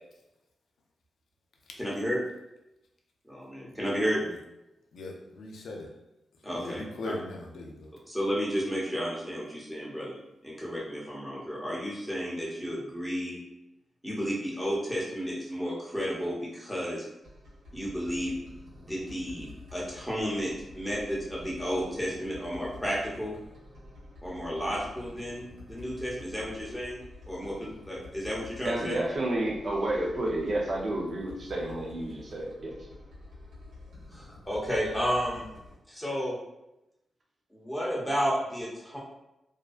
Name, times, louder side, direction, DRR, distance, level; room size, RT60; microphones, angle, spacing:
voice 1, 1.8-2.2 3.3-4.2 6.4-6.8 8.1-10.2 10.4-13.4 14.0-17.1 17.7-18.3 18.8-23.4 24.2-29.0 34.1-35.5 35.9-36.4 37.5-39.0, equal, ahead, -6 dB, 0.9 m, -32 dB
voice 2, 4.9-5.9 6.5-7.9, left 2 dB, 80° left, 0 dB, 0.4 m, -39 dB
sound 1, 17.2-35.7, left 2 dB, 85° right, 1.1 m, -49 dB
voice 3, 28.6-32.7, right 1 dB, 55° right, -1 dB, 0.6 m, -30 dB
2.5 x 2.2 x 2.4 m, 0.92 s
cardioid pair, 80°, 0 cm